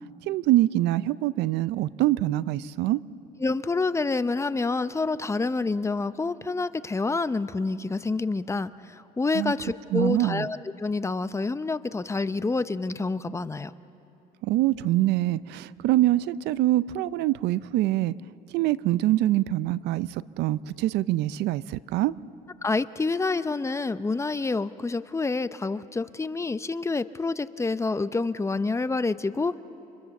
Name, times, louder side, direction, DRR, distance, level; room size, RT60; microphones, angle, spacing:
voice 1, 0.3-3.0 9.3-9.5 9.9-10.5 14.4-18.1 18.5-22.1, right 15 dB, 85° right, 18 dB, 0.5 m, -24 dB
voice 2, 3.4-13.7 22.6-29.6, left 3 dB, 15° left, 13 dB, 0.6 m, -28 dB
29.5 x 26.5 x 7.1 m, 2.8 s
cardioid pair, 110°, 17 cm